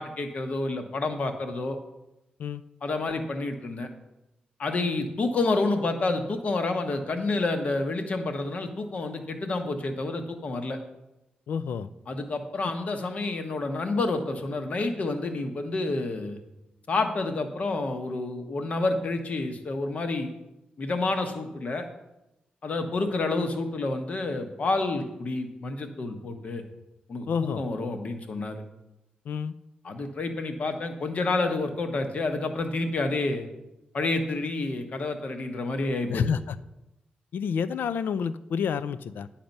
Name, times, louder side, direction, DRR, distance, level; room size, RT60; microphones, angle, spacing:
voice 1, 0.0-1.8 2.8-3.9 4.6-10.8 12.1-16.4 16.9-20.3 20.8-21.9 22.6-26.6 27.1-28.6 29.8-33.5 33.9-36.2, left 3 dB, 45° left, 6 dB, 1.0 m, -29 dB
voice 2, 11.5-11.9 27.3-27.6 29.3-29.6 36.1-36.6 37.3-39.3, left 6 dB, 80° left, 14 dB, 0.4 m, -29 dB
10.0 x 5.8 x 5.3 m, 0.93 s
wide cardioid pair, 170°, 3 cm